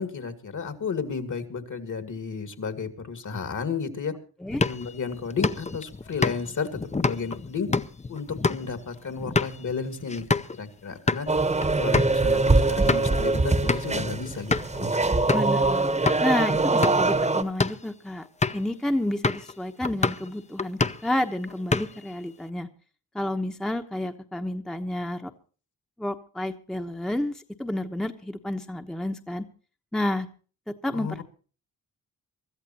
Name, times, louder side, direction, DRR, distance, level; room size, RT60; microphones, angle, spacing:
voice 1, 0.0-4.1 4.6-6.7 7.0-7.7 8.1-11.3 11.8-15.0 30.9-31.2, left 5 dB, 55° left, 9 dB, 2.4 m, -33 dB
sound 1, 4.5-10.6 10.9-11.3 11.6-11.7 11.9-12.1 12.6-13.2 13.7-14.0 14.5-14.8 15.3-15.6 16.1-16.2 16.7-17.1 17.5-17.9 18.4-18.7 19.2-19.5 19.8-20.3 20.6-21.1 21.5-22.1, left 4 dB, 20° left, 0.7 m, -27 dB
sound 2, 11.3-17.4, right 3 dB, 20° right, 1.1 m, -23 dB
voice 2, 15.3-15.8 16.2-18.2 18.5-22.7 23.1-25.3 26.0-29.5 29.9-30.3 30.7-31.2, left 1 dB, ahead, 6 dB, 1.0 m, -30 dB
24.0 x 13.5 x 2.9 m, 0.38 s
cardioid pair, 80°, 37 cm